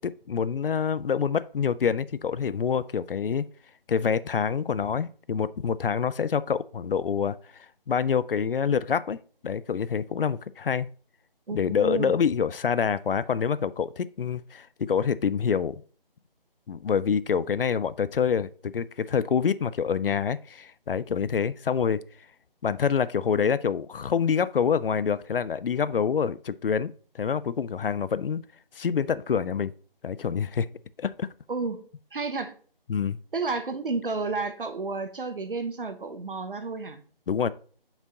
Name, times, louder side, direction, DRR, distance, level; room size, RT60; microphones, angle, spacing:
voice 1, 0.0-3.4 3.9-7.4 7.9-9.2 9.4-10.9 11.5-15.8 16.7-22.0 22.6-28.4 28.8-29.7 30.0-30.7 31.0-31.3 32.9-33.2 37.3-37.5, left 7 dB, 70° left, 0.4 m, -26 dB
voice 2, 11.5-12.1 31.5-31.8 32.1-32.5 33.3-37.0, right 4 dB, 65° right, 1.0 m, -31 dB
5.6 x 4.7 x 3.7 m
figure-of-eight pair, 170°, 29 cm